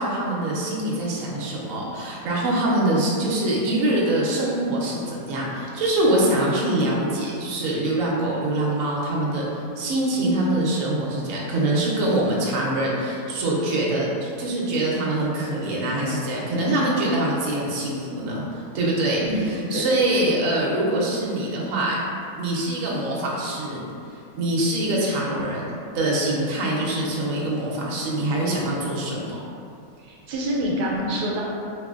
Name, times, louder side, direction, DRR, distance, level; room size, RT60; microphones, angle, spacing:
voice 1, 0.0-22.0 22.4-23.8 24.3-25.7 25.9-29.4, right 1 dB, 65° right, -4 dB, 1.0 m, -24 dB
voice 2, 19.2-20.0 30.0-31.4, equal, 85° right, -3 dB, 1.1 m, -26 dB
4.4 x 2.6 x 2.4 m, 2.6 s
omnidirectional pair, 1.6 m